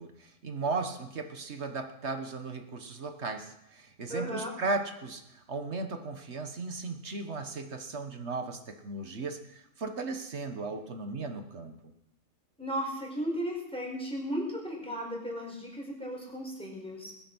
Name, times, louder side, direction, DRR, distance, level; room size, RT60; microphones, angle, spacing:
voice 1, 0.0-11.9, right 3 dB, 55° right, 6 dB, 1.5 m, -36 dB
voice 2, 4.1-4.5 12.6-17.1, equal, 5° left, -1 dB, 4.7 m, -35 dB
21.0 x 9.1 x 6.1 m, 0.81 s
omnidirectional pair, 1.5 m